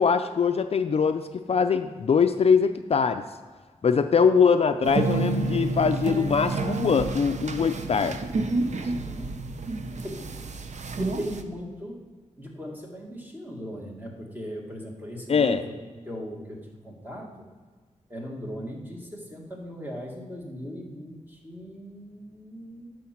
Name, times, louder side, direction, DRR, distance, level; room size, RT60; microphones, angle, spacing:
voice 1, 0.0-3.2 3.8-8.2 8.8-8.9 15.3-15.6, left 6 dB, 50° left, 9 dB, 0.4 m, -22 dB
sound 1, 4.8-11.4, right 3 dB, 65° right, 0.6 m, -29 dB
voice 2, 8.9-9.4 10.0-10.3 10.9-12.0 12.4-15.8 16.1-17.3 18.1-22.9, equal, 15° right, -1 dB, 1.8 m, -38 dB
9.6 x 6.4 x 4.4 m, 1.4 s
wide cardioid pair, 105°, 13 cm